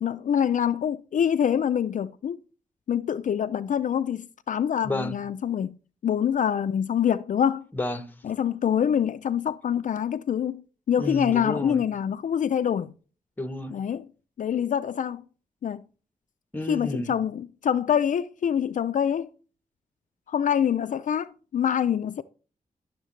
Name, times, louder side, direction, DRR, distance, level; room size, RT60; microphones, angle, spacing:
voice 1, 0.0-2.4 2.9-5.7 6.0-7.7 8.2-12.9 13.7-14.1 14.4-15.2 15.6-15.8 16.7-19.3 20.3-22.2, left 8 dB, 65° left, 0.4 m, -25 dB
voice 2, 4.8-5.2 7.7-8.1 11.0-11.8 13.4-13.8 16.5-17.1, left 1 dB, 10° left, 1.0 m, -31 dB
12.0 x 6.5 x 3.2 m
wide cardioid pair, 120°, 14 cm